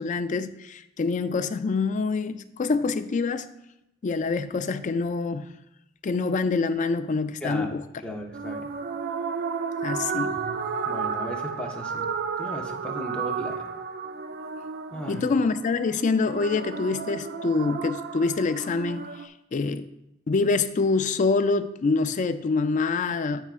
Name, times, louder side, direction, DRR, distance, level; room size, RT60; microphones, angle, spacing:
voice 1, 0.0-3.5 4.0-5.5 6.0-7.8 9.8-10.4 15.1-19.9 20.3-23.5, left 4 dB, 35° left, 0.3 m, -26 dB
voice 2, 7.4-8.7 10.4-10.6 10.8-12.1 12.4-13.7 14.9-15.3, equal, 5° left, 0.8 m, -36 dB
sound 1, 8.3-19.3, right 5 dB, 45° right, 0.4 m, -32 dB
12.5 x 4.6 x 2.4 m
head